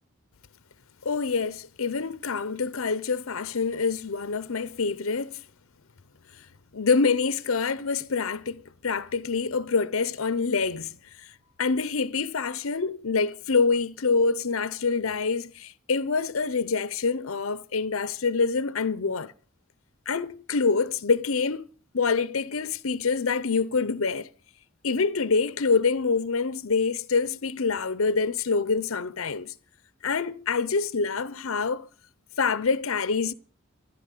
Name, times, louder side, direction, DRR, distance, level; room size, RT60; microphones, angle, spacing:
voice 1, 1.0-5.4 6.7-10.9 11.2-11.3 11.6-19.3 20.1-21.7 21.9-24.3 24.8-29.5 30.0-31.9 32.4-33.3, left 4 dB, 80° left, 0.7 m, -26 dB
15.0 x 12.0 x 6.7 m
head